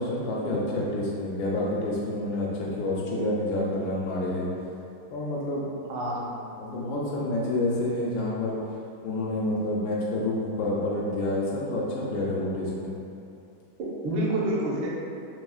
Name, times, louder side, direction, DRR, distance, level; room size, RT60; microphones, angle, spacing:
voice 1, 0.0-4.5 5.1-5.6 6.6-8.6 9.0-12.9, left 1 dB, 75° left, -4 dB, 1.2 m, -28 dB
voice 2, 5.9-6.3 13.8-14.9, right 1 dB, 75° right, -4 dB, 1.3 m, -28 dB
4.2 x 2.7 x 2.3 m, 2.7 s
omnidirectional pair, 2.3 m